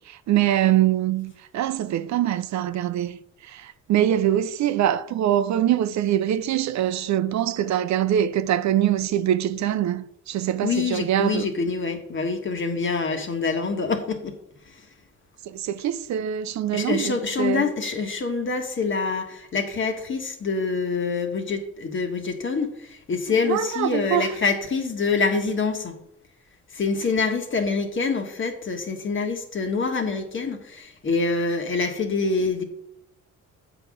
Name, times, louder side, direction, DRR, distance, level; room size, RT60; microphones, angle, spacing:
voice 1, 0.1-3.2 3.4-11.5 13.1-13.2 15.5-17.7 23.5-24.3, right 11 dB, 65° right, 0.6 m, -24 dB
voice 2, 10.6-14.4 16.7-26.0 26.7-32.6, left 4 dB, 40° left, 1.4 m, -26 dB
7.9 x 4.0 x 6.2 m
cardioid pair, 90°, 30 cm